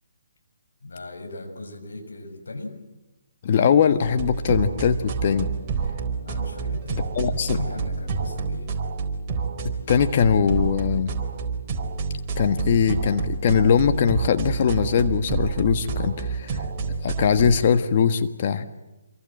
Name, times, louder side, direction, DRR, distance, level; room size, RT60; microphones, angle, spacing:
voice 1, 0.8-2.8 6.2-8.8, left 2 dB, 75° left, 5 dB, 6.7 m, -38 dB
voice 2, 3.4-5.5 6.9-7.6 9.9-11.1 12.4-16.6 17.0-18.7, left 7 dB, 45° left, 9 dB, 1.5 m, -21 dB
sound 1, 4.0-17.6, right 5 dB, 30° right, 4.0 m, -28 dB
27.5 x 23.5 x 7.7 m, 1.0 s
figure-of-eight pair, 145°, 0 cm